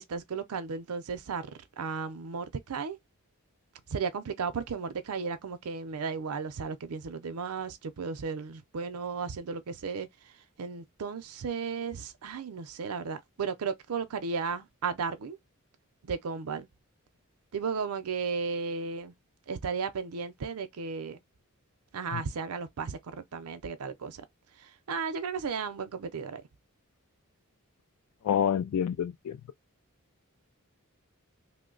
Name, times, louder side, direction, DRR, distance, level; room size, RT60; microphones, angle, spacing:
voice 1, 0.0-1.5 1.8-3.0 3.9-10.1 10.6-15.4 16.0-16.7 17.5-19.1 19.5-21.2 21.9-24.2 24.9-26.4, right 5 dB, 90° right, 0.5 m, -34 dB
voice 2, 28.2-29.4, left 8 dB, 90° left, 0.3 m, -28 dB
3.0 x 2.1 x 3.8 m
head